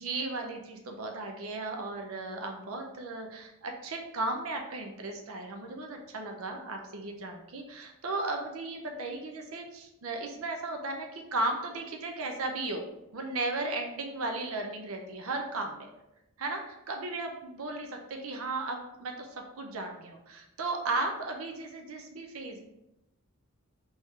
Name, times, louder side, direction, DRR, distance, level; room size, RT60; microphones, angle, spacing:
voice 1, 0.0-12.8 13.1-15.9 16.4-22.6, right 2 dB, 85° right, 3 dB, 0.6 m, -35 dB
3.6 x 3.5 x 4.0 m, 0.91 s
head